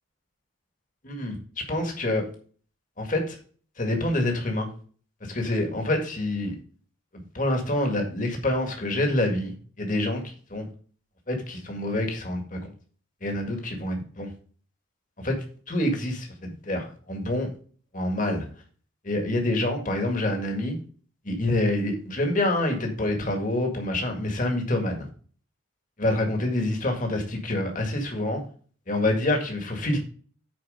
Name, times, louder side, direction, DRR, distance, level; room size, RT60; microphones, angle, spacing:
voice 1, 1.0-1.4 1.7-2.2 3.0-3.4 3.8-4.7 5.2-6.5 7.3-10.7 11.3-12.6 13.2-14.3 15.2-17.5 17.9-18.5 19.0-20.8 21.2-25.1 26.0-28.4 28.9-30.0, left 1 dB, 40° left, 3 dB, 2.0 m, -27 dB
9.6 x 4.6 x 5.0 m, 0.43 s
head